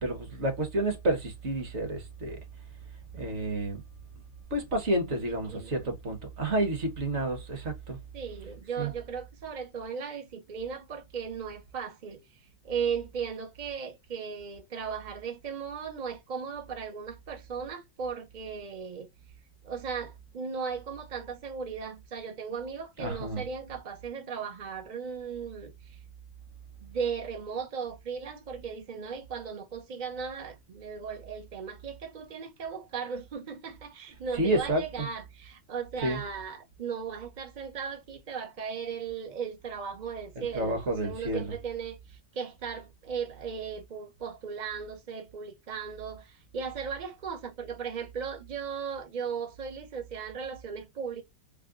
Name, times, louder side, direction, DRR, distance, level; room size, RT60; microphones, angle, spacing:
voice 1, 0.0-2.4 3.1-3.8 4.5-8.0 8.8-8.9 23.0-23.4 34.4-35.1 36.0-36.2 40.4-41.5, right 1 dB, 45° right, 1.2 m, -30 dB
voice 2, 5.4-5.9 8.1-19.1 19.6-26.0 26.8-51.2, right 6 dB, 65° right, 0.4 m, -37 dB
3.5 x 2.2 x 3.6 m
omnidirectional pair, 1.9 m